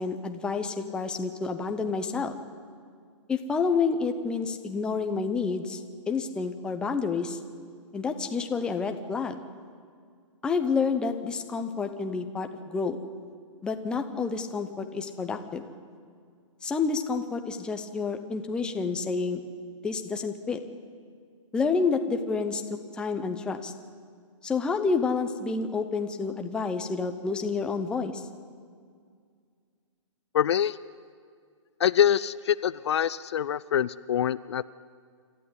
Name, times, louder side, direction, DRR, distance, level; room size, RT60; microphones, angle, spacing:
voice 1, 0.0-2.3 3.3-5.8 6.1-7.4 7.9-9.4 10.4-13.0 13.6-15.6 16.6-19.4 19.8-20.6 21.5-22.6 22.9-23.7 24.4-28.2, left 4 dB, 5° left, 6 dB, 0.7 m, -29 dB
voice 2, 30.3-30.8 31.8-34.6, left 9 dB, 55° left, 17 dB, 0.5 m, -25 dB
27.0 x 13.5 x 9.6 m, 2.1 s
hypercardioid pair, 165°, 17 cm